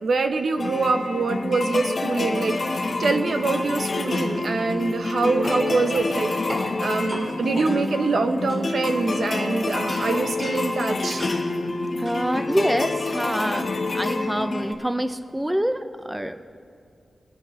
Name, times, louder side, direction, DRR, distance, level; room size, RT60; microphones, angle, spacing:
voice 1, 0.0-2.6 3.0-6.3 6.8-11.2, right 3 dB, 70° right, 7 dB, 0.7 m, -24 dB
sound 1, 0.6-14.7, left 2 dB, 50° left, 1.2 m, -27 dB
sound 2, 5.4-6.7 7.1-7.3 7.9-8.2 8.5-9.4 9.9-10.6 11.2-11.4 12.0-12.2, equal, 30° right, 3.5 m, -36 dB
voice 2, 12.0-16.4, equal, 5° right, 10 dB, 0.5 m, -26 dB
22.0 x 10.5 x 3.2 m, 2.4 s
wide cardioid pair, 125°, 0 cm